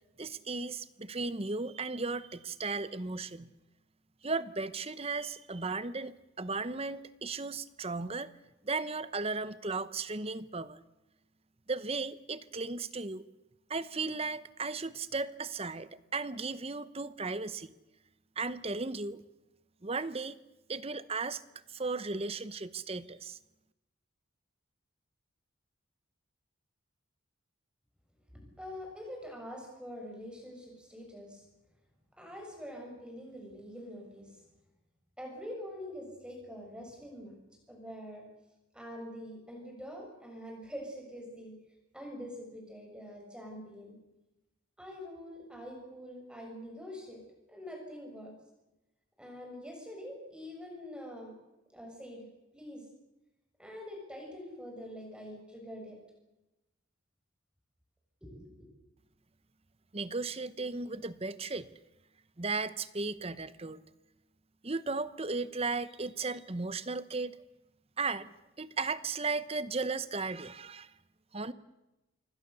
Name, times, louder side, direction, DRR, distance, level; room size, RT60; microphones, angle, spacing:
voice 1, 0.2-3.5 4.2-8.3 8.6-10.8 11.7-13.2 13.7-17.7 18.4-19.2 19.8-20.4 20.7-21.4 21.7-23.4 59.9-61.7 62.4-63.8 64.6-67.4 68.0-68.3 68.6-70.9 71.3-71.5, right 3 dB, 30° right, 15 dB, 0.9 m, -35 dB
voice 2, 28.3-31.5 32.2-34.4 35.2-37.4 37.7-38.3 38.7-41.5 41.9-44.0 44.8-47.2 47.5-48.3 49.2-51.3 51.7-52.3 52.5-52.9 53.6-56.0 58.2-58.7, equal, 5° right, 1 dB, 7.0 m, -45 dB
26.5 x 23.5 x 6.9 m, 0.99 s
head